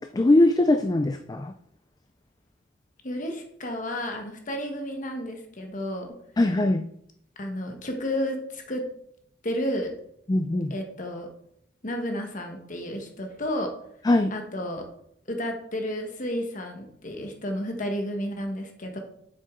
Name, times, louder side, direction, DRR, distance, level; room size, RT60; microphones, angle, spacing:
voice 1, 0.1-1.5 6.4-6.9 10.3-10.7 14.1-14.3, left 2 dB, 20° left, 7 dB, 0.3 m, -21 dB
voice 2, 3.0-6.1 7.4-8.9 9.4-9.9 10.7-11.3 11.8-13.7 14.3-14.9 15.3-19.0, equal, 45° left, 4 dB, 1.4 m, -32 dB
7.7 x 6.7 x 3.8 m, 0.70 s
head